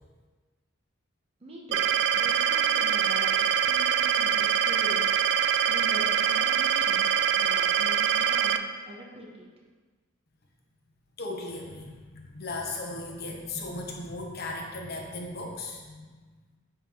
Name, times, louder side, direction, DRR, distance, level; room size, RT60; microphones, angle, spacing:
voice 1, 1.4-1.8 2.1-5.1 5.7-7.1 7.3-9.5, right 1 dB, 30° right, -2 dB, 0.9 m, -43 dB
sound 1, 1.7-8.6, right 8 dB, 60° right, 0.3 m, -24 dB
voice 2, 11.2-16.4, left 2 dB, 50° left, 0 dB, 0.8 m, -37 dB
8.9 x 3.0 x 3.5 m, 1.4 s
head